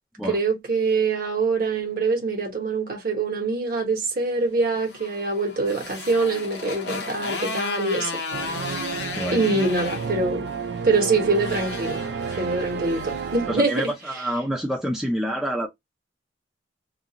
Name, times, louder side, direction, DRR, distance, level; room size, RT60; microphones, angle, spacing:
voice 1, 0.2-8.1 8.4-8.9 9.3-10.5 10.8-13.9, right 3 dB, 50° right, 1.1 m, -24 dB
Motorcycle, 4.6-14.0, left 4 dB, 65° left, 0.6 m, -35 dB
sound 1, 8.3-13.6, right 6 dB, 65° right, 0.4 m, -31 dB
voice 2, 13.5-15.7, equal, 5° right, 0.4 m, -27 dB
2.5 x 2.3 x 2.8 m
head